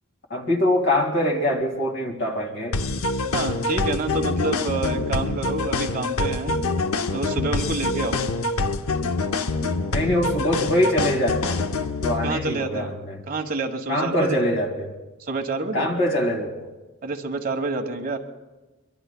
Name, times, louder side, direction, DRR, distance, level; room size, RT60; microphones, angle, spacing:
voice 1, 0.3-2.8 9.9-11.6 12.0-13.2 13.9-14.9 15.7-16.7, left 1 dB, 60° left, 2 dB, 2.1 m, -23 dB
sound 1, 2.7-12.3, left 3 dB, 85° left, 0.7 m, -25 dB
voice 2, 3.3-6.5 7.1-8.2 12.2-12.9 13.3-14.4 15.2-15.9 17.0-18.2, right 3 dB, 45° right, 4 dB, 1.3 m, -28 dB
23.5 x 22.5 x 2.2 m, 1.2 s
head